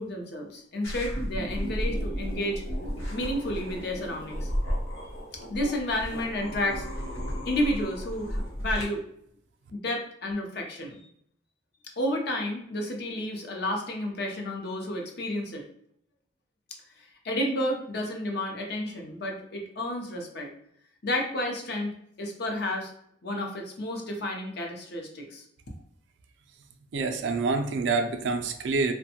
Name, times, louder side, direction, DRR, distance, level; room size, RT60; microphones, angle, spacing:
voice 1, 0.0-2.6 3.1-4.5 5.0-5.1 5.5-6.8 7.4-9.0 9.7-11.1 12.0-15.6 17.0-20.5 21.0-21.9 22.2-22.9 23.2-25.4, left 1 dB, 55° left, 1 dB, 0.6 m, -31 dB
sound 1, 0.8-8.8, equal, 90° left, 0.9 m, -33 dB
voice 2, 26.9-28.9, right 4 dB, 65° right, 5 dB, 0.4 m, -27 dB
2.5 x 2.1 x 2.7 m, 0.70 s
head